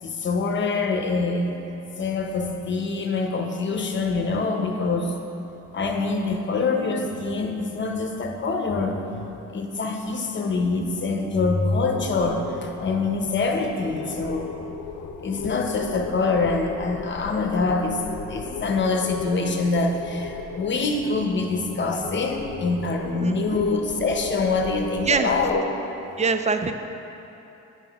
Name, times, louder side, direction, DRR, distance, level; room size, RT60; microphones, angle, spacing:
voice 1, 0.0-1.6 2.0-5.2 5.7-9.2 9.5-14.5 15.2-18.0 18.3-25.6, left 3 dB, 40° left, 3 dB, 0.8 m, -25 dB
sound 1, 11.9-25.6, left 7 dB, 70° left, 0.5 m, -37 dB
voice 2, 23.2-23.6 25.0-25.3 26.2-26.7, right 5 dB, 25° right, 8 dB, 0.4 m, -24 dB
9.0 x 5.9 x 3.5 m, 3.0 s
cardioid pair, 90°, 30 cm